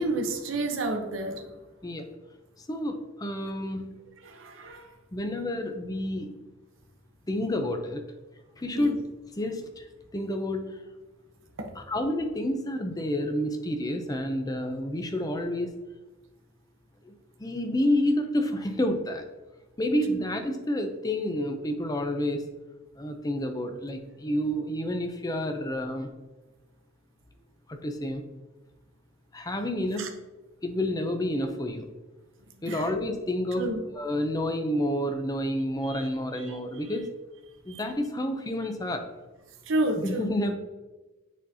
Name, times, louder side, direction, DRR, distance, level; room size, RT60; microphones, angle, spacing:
voice 1, 0.0-1.4 4.2-4.9 8.7-9.0 11.6-11.7 20.1-20.2 30.0-30.1 32.7-32.9 33.6-33.8 35.8-36.0 36.4-36.6 37.7-37.8 39.7-40.3, right 2 dB, 65° right, 4 dB, 0.8 m, -30 dB
voice 2, 2.7-4.0 5.1-6.4 7.3-8.0 8.6-9.0 9.4-9.9 10.1-10.8 11.8-15.7 17.0-17.1 17.4-19.2 19.8-22.5 23.0-26.1 27.7-28.2 29.3-30.1 30.6-31.9 32.6-37.1 37.7-39.1 40.0-40.6, left 1 dB, 20° left, 5 dB, 0.6 m, -29 dB
9.1 x 3.9 x 2.8 m, 1.2 s
head